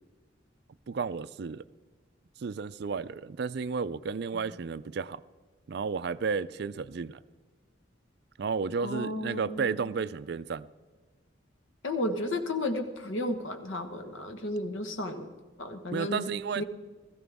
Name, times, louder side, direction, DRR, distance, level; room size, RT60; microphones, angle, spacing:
voice 1, 0.9-1.6 2.4-5.2 5.7-7.2 8.4-10.7 15.9-16.6, right 5 dB, 60° right, 0.4 m, -32 dB
voice 2, 8.8-10.0 11.8-15.3 15.6-16.6, left 1 dB, 90° left, 1.3 m, -33 dB
16.5 x 15.0 x 3.5 m
head